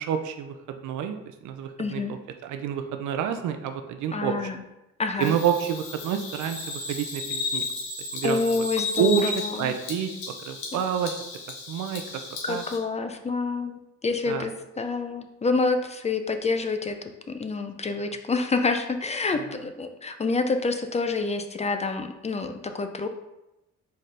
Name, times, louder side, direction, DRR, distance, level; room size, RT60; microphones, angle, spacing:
voice 1, 0.0-4.5 5.2-7.7 8.1-8.4 9.0-9.3 9.6-10.1 10.5-11.2 11.7-12.2 12.5-12.6 14.3-14.5, right 8 dB, 80° right, 7 dB, 0.5 m, -28 dB
voice 2, 1.8-2.1 4.1-4.6 5.0-5.4 8.2-9.8 12.4-23.1, left 4 dB, 20° left, 6 dB, 0.4 m, -28 dB
Bird vocalization bird call bird song, 5.2-12.8, left 4 dB, 85° left, 1.1 m, -34 dB
4.2 x 3.7 x 3.2 m, 0.94 s
cardioid pair, 90°, 30 cm